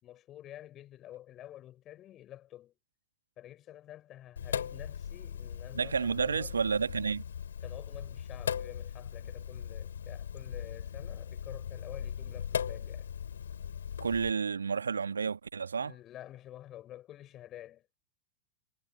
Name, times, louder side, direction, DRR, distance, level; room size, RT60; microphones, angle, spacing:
voice 1, 0.0-2.7 3.4-6.6 7.6-13.1 15.8-17.9, left 13 dB, 30° left, 5.4 m, -49 dB
Sink (filling or washing), 4.4-14.3, left 8 dB, 65° left, 4.3 m, -39 dB
voice 2, 5.7-7.2 14.0-16.0, right 5 dB, 75° right, 1.8 m, -31 dB
figure-of-eight pair, 90°, 0 cm